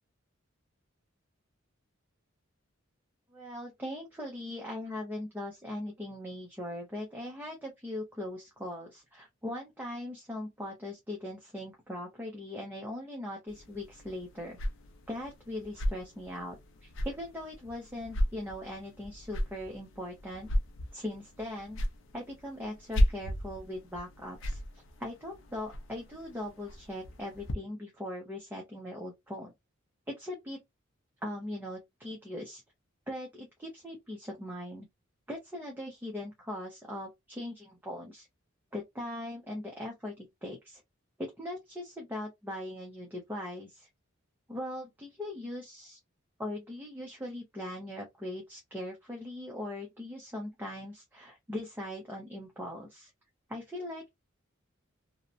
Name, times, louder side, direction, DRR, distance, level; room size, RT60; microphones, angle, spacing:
voice 1, 3.3-14.6 15.1-20.5 20.9-21.8 22.1-29.5 30.1-30.6 31.2-32.6 33.1-34.9 35.3-38.3 38.7-40.8 41.2-43.9 44.5-46.0 46.4-53.1 53.5-54.1, left 1 dB, 10° right, 0.6 m, -40 dB
sound 1, 13.5-27.5, equal, 65° left, 0.5 m, -35 dB
2.8 x 2.1 x 2.4 m
head